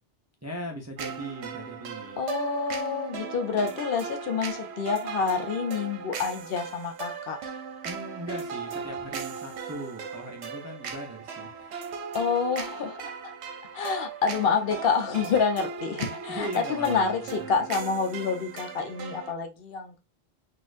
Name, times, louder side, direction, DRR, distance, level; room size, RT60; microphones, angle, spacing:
voice 1, 0.4-2.2 7.8-11.8 16.3-17.6, right 1 dB, 20° right, 0.4 m, -39 dB
sound 1, 1.0-19.3, right 6 dB, 75° right, 0.9 m, -37 dB
voice 2, 2.2-7.4 12.1-13.3 13.7-20.0, left 5 dB, 60° left, 0.7 m, -28 dB
4.0 x 2.5 x 2.5 m
omnidirectional pair, 1.2 m